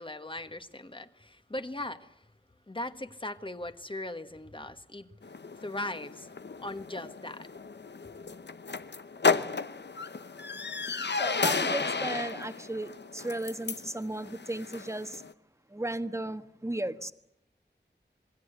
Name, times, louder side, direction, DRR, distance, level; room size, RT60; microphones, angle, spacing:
voice 1, 0.0-2.3 2.7-5.1 5.6-6.3 6.6-7.5, left 1 dB, 30° left, 1.5 m, -39 dB
sound 1, 5.2-15.3, left 4 dB, 70° left, 0.9 m, -33 dB
voice 2, 10.9-15.2 15.7-17.1, right 1 dB, 15° right, 1.4 m, -35 dB
27.0 x 21.0 x 8.1 m
wide cardioid pair, 60°, 18 cm